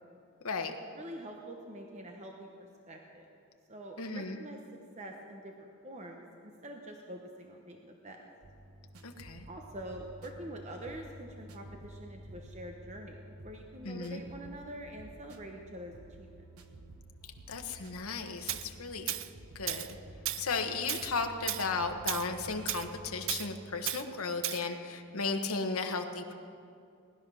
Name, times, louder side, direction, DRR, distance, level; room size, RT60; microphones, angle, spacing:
voice 1, 0.9-3.3 3.7-4.6 5.0-8.2 9.5-16.5, right 1 dB, 30° right, 2 dB, 1.0 m, -46 dB
voice 2, 4.0-4.4 9.0-9.4 13.8-14.2 17.5-19.1 19.5-19.9 20.4-26.3, left 4 dB, 75° left, 5 dB, 1.2 m, -35 dB
sound 1, 8.4-23.6, right 1 dB, 80° right, 1.1 m, -51 dB
Tools, 18.5-18.6 19.1-19.3 19.7-19.9 20.2-20.5 20.9-21.1 21.5-21.7 22.1-22.3 22.7-22.9 23.3-23.5 23.9-24.0 24.4-24.6, right 13 dB, 60° right, 0.5 m, -34 dB
19.0 x 11.5 x 6.3 m, 2.5 s
head